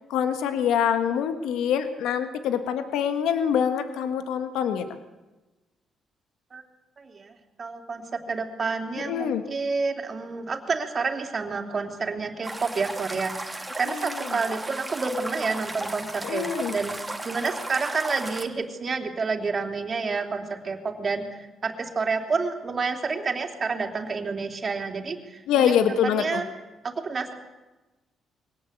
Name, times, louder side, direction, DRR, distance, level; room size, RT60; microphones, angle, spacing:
voice 1, 0.1-4.9 9.0-9.4 13.9-14.2 16.2-16.7 25.5-26.4, left 8 dB, 85° left, 8 dB, 1.5 m, -25 dB
voice 2, 7.0-25.6 26.0-26.5 26.8-27.3, right 4 dB, 40° right, 3 dB, 3.5 m, -29 dB
sound 1, 12.4-18.5, right 2 dB, 10° right, 2.8 m, -35 dB
23.0 x 18.0 x 8.4 m, 1.1 s
cardioid pair, 90°, 0 cm